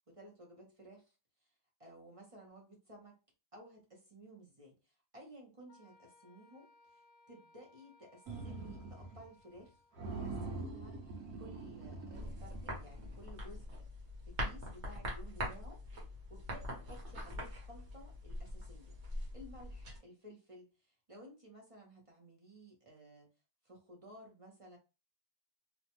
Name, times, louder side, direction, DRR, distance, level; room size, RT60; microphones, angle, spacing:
voice 1, 0.1-1.2 1.4-1.5 1.8-3.2 3.5-15.8 16.1-19.0 19.3-23.3 23.6-24.8, right 1 dB, 35° right, 0.5 m, -56 dB
Wind instrument woodwind instrument, 5.7-10.1, left 2 dB, 70° left, 0.9 m, -65 dB
sound 1, 8.3-9.3 9.5-9.7 10.0-13.3, right 3 dB, 90° right, 1.2 m, -44 dB
sound 2, 12.1-20.0, equal, 55° right, 1.1 m, -43 dB
3.0 x 2.1 x 2.9 m
omnidirectional pair, 1.5 m